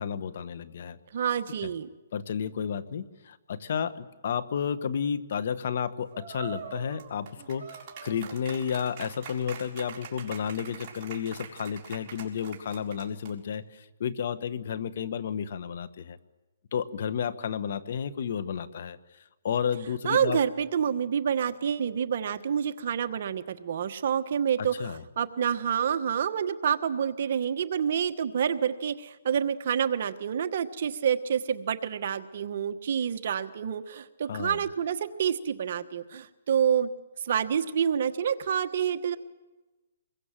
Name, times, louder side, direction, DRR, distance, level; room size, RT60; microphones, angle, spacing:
voice 1, 0.0-1.0 2.1-7.8 8.0-16.2 16.7-20.4 24.6-25.0 34.3-34.6, left 7 dB, 55° left, 14 dB, 1.4 m, -32 dB
voice 2, 1.1-1.9 20.0-36.9 37.2-39.2, right 8 dB, 50° right, 9 dB, 1.2 m, -28 dB
sound 1, 6.1-13.5, right 6 dB, 30° right, 4.7 m, -44 dB
26.0 x 22.0 x 7.6 m, 1.1 s
hypercardioid pair, 160°, 0 cm